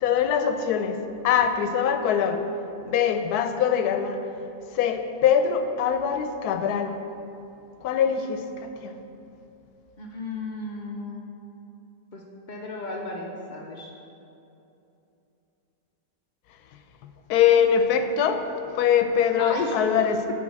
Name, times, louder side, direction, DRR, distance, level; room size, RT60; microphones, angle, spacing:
voice 1, 0.0-1.0 1.2-2.4 2.8-4.2 4.7-6.9 7.8-8.9 17.0-18.5 18.7-20.3, left 8 dB, 80° left, 8 dB, 1.1 m, -23 dB
voice 2, 10.0-11.3 12.1-12.2 12.5-13.9 19.4-19.8, left 3 dB, 60° left, -1 dB, 0.5 m, -33 dB
7.0 x 4.4 x 6.3 m, 2.8 s
omnidirectional pair, 1.6 m